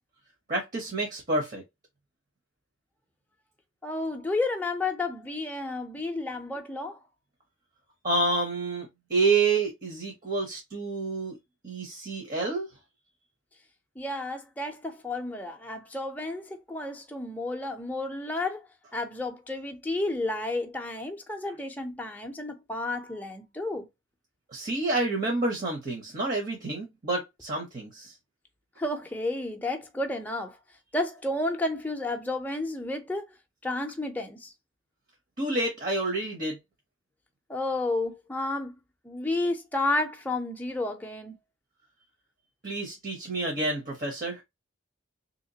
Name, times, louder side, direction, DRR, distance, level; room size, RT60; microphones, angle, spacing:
voice 1, 0.5-1.6 8.0-11.3 11.6-12.7 24.5-28.1 35.4-36.6 42.6-44.4, right 3 dB, 40° right, 0.9 m, -28 dB
voice 2, 3.8-7.0 14.0-23.9 28.8-30.6 30.9-33.3 33.6-34.5 37.5-38.8 39.0-41.3, left 2 dB, 10° left, 0.5 m, -31 dB
3.4 x 2.9 x 2.7 m
head